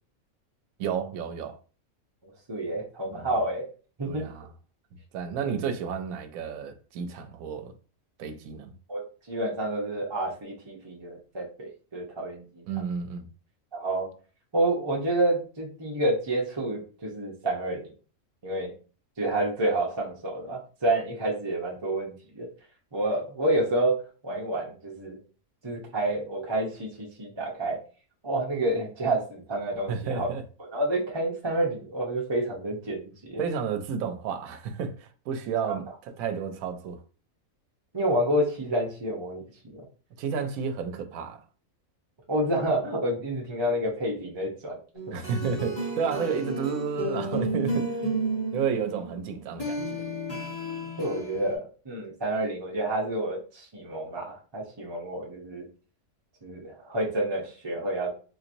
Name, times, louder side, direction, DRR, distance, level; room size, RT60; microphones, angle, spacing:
voice 1, 0.8-1.6 3.1-3.3 4.0-4.5 5.1-7.7 8.2-8.7 12.7-13.3 29.9-30.4 33.4-37.0 40.2-41.4 45.1-48.1 48.5-49.8, right 6 dB, 80° right, 1.0 m, -31 dB
voice 2, 2.2-3.7 4.0-4.3 8.9-12.6 13.7-14.1 14.5-17.8 18.4-18.7 19.2-22.5 22.9-24.0 24.2-25.2 25.6-27.8 28.2-30.3 30.6-33.4 35.6-35.8 37.9-39.4 39.7-39.8 42.3-44.8 51.0-55.7 56.4-58.1, right 1 dB, 25° right, 0.6 m, -29 dB
sound 1, 44.9-51.6, right 2 dB, 30° left, 0.9 m, -32 dB
3.9 x 2.9 x 2.6 m
omnidirectional pair, 1.5 m